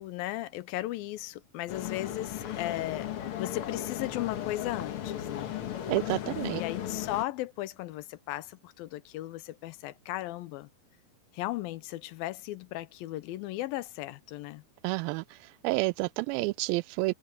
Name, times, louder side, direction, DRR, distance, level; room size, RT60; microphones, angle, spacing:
voice 1, 0.0-5.5 6.5-10.7 11.3-14.6, left 16 dB, 85° left, 2.6 m, -36 dB
sound 1, 1.7-7.2, left 10 dB, 60° left, 1.4 m, -36 dB
voice 2, 5.9-6.6 14.8-15.2 15.6-17.1, right 21 dB, 90° right, 2.4 m, -29 dB
omnidirectional pair, 4.1 m